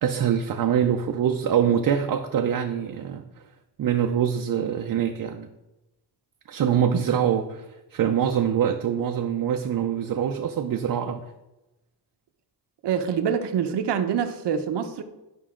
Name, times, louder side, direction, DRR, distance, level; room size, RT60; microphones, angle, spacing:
voice 1, 0.0-3.2 3.8-5.5 6.5-11.2, right 8 dB, 55° right, 4 dB, 0.6 m, -24 dB
voice 2, 12.8-15.0, right 7 dB, 85° right, 8 dB, 0.9 m, -25 dB
11.5 x 5.4 x 3.7 m, 1.0 s
wide cardioid pair, 135°, 41 cm